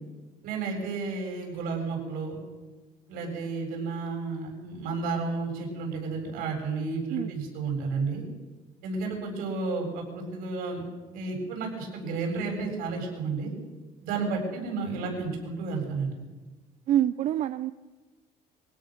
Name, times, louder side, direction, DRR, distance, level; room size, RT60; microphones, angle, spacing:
voice 1, 0.4-2.4 3.1-8.2 8.8-10.8 11.1-13.5 14.0-16.1, right 4 dB, 85° right, 2 dB, 7.6 m, -32 dB
voice 2, 16.9-17.7, right 11 dB, 55° right, 13 dB, 0.6 m, -26 dB
25.0 x 17.0 x 6.6 m, 1.2 s
cardioid pair, 140°, 14 cm